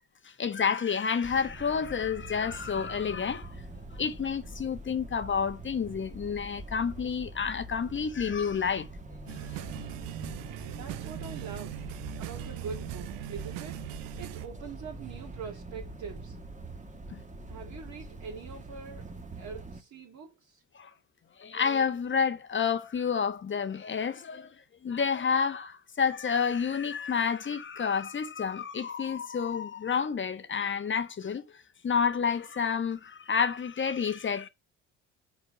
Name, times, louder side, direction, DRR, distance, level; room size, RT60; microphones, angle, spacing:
voice 1, 0.2-3.5 4.0-8.9 9.3-9.6 17.1-17.2 20.7-20.9 21.4-24.5 24.8-34.5, left 6 dB, 30° left, 1.1 m, -29 dB
sound 1, 1.2-19.8, right 2 dB, 20° right, 1.4 m, -44 dB
sound 2, 9.3-14.5, right 14 dB, 60° right, 0.7 m, -40 dB
voice 2, 10.7-11.8 12.2-13.8 14.2-16.4 17.5-19.1 19.4-20.6, right 6 dB, 45° right, 1.9 m, -43 dB
6.3 x 4.5 x 4.8 m
hypercardioid pair, 55°, 38 cm